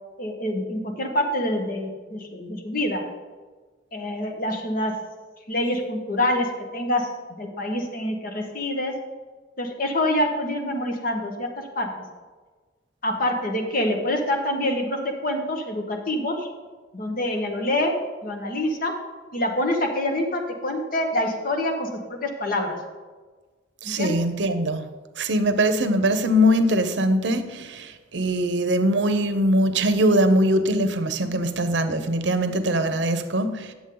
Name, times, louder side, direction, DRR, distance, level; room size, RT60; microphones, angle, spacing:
voice 1, 0.2-3.0 3.9-4.9 5.5-7.1 7.4-8.9 9.6-11.5 11.7-11.9 13.0-16.5 16.9-17.9 18.2-18.9 19.3-22.8 23.8-24.1, left 1 dB, 50° left, 4 dB, 1.1 m, -26 dB
voice 2, 23.8-24.8 25.2-33.7, equal, 70° right, 9 dB, 0.7 m, -22 dB
9.9 x 7.2 x 3.8 m, 1.4 s
head